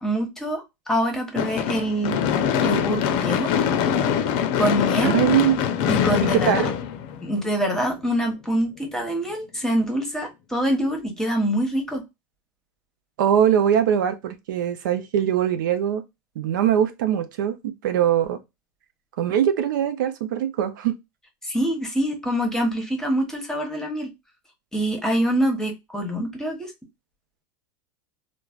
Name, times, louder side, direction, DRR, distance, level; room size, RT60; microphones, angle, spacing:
voice 1, 0.0-2.2 2.6-3.5 4.5-5.2 5.9-6.5 7.2-12.0 21.4-24.1 24.7-26.7, equal, 5° left, 0.9 m, -25 dB
Gunshot gunfire / Fireworks, 1.4-7.6, left 8 dB, 55° left, 0.5 m, -23 dB
voice 2, 5.0-5.7 6.2-6.7 13.2-16.0 16.4-18.4 19.2-20.9, right 9 dB, 80° right, 0.5 m, -22 dB
3.1 x 2.1 x 2.3 m
supercardioid pair, 125°, 10 cm